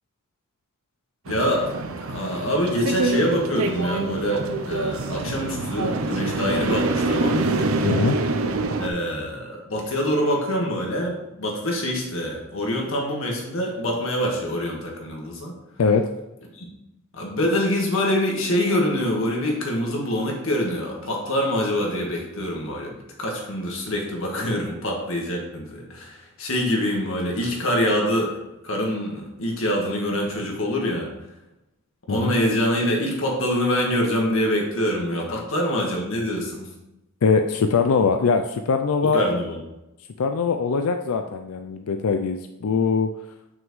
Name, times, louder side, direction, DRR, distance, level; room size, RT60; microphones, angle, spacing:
voice 1, 1.3-1.6 2.0-7.5 8.8-15.5 16.5-16.7 17.1-28.3 28.6-31.1 32.1-36.7 39.0-39.6, equal, 70° left, 0 dB, 1.7 m, -25 dB
sound 1, 1.3-8.9, right 3 dB, 80° right, 0.6 m, -26 dB
voice 2, 7.8-8.2 15.8-16.1 32.1-32.3 35.3-35.4 37.2-39.2 40.2-43.1, left 5 dB, 85° left, 6 dB, 0.4 m, -22 dB
7.2 x 6.1 x 3.2 m, 0.93 s
head